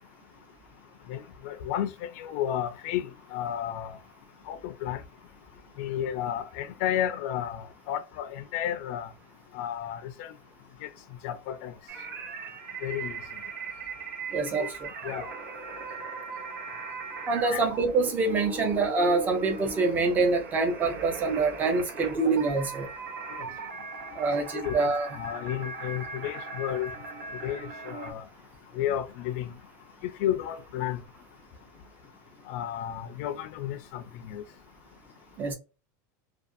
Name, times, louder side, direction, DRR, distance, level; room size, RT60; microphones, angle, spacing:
voice 1, 1.1-4.0 4.5-5.0 5.8-9.1 9.5-10.3 10.8-10.9 11.2-11.7 12.8-13.2 14.6-14.7 15.0-15.3 17.5-17.6 23.3-23.4 24.6-24.7 25.1-26.9 27.4-28.2 28.8-29.5 30.0-31.0 32.5-34.4, left 11 dB, 50° left, 0.4 m, -32 dB
sound 1, 11.9-28.1, right 4 dB, 85° right, 1.0 m, -39 dB
voice 2, 14.3-14.7 17.3-22.9 24.2-25.1 35.4-35.5, right 3 dB, 15° right, 0.5 m, -25 dB
2.5 x 2.3 x 2.5 m
supercardioid pair, 165°, 10 cm